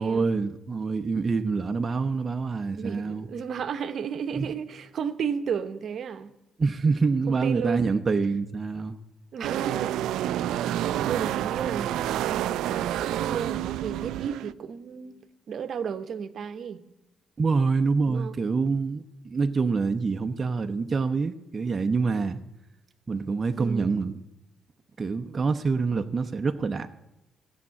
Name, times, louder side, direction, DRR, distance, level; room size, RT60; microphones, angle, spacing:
voice 1, 0.0-3.3 4.4-4.5 6.6-9.0 17.4-22.4 23.1-24.1 25.0-26.9, right 4 dB, 35° right, 0.8 m, -26 dB
voice 2, 2.8-6.4 7.3-7.9 9.3-11.9 12.3-15.2 15.5-16.8 18.1-18.3 23.6-23.9, right 7 dB, 60° right, 0.9 m, -33 dB
sound 1, 9.4-14.5, right 12 dB, 85° right, 0.4 m, -29 dB
14.0 x 7.4 x 9.7 m
cardioid pair, 90°, 0 cm